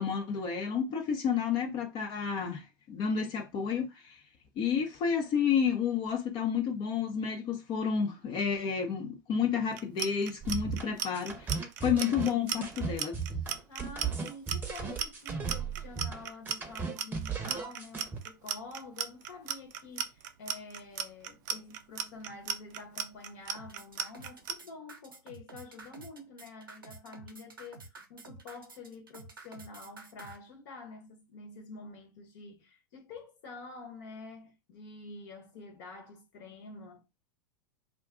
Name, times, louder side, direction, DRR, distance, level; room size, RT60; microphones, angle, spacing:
voice 1, 0.0-4.2 4.6-11.5 11.8-13.2, left 7 dB, 40° left, 0.7 m, -30 dB
Clock, 9.7-24.5, right 8 dB, 60° right, 0.5 m, -35 dB
sound 1, 10.4-18.2, right 5 dB, 15° right, 0.8 m, -36 dB
voice 2, 13.7-37.0, left 3 dB, 55° left, 1.1 m, -48 dB
sound 2, 23.5-30.4, right 3 dB, 90° right, 0.7 m, -50 dB
2.4 x 2.2 x 3.6 m
hypercardioid pair, 95°, 11 cm